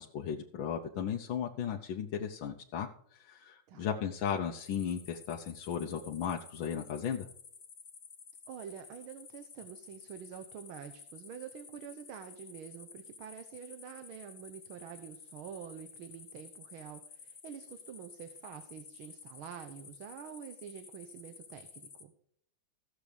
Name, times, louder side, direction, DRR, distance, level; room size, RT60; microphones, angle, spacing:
voice 1, 0.0-7.3, left 8 dB, 70° left, 1 dB, 1.6 m, -36 dB
sound 1, 4.6-22.0, left 6 dB, 50° left, 2.0 m, -53 dB
voice 2, 8.5-22.1, right 8 dB, 80° right, 8 dB, 1.8 m, -47 dB
15.0 x 7.3 x 5.1 m, 0.65 s
omnidirectional pair, 2.3 m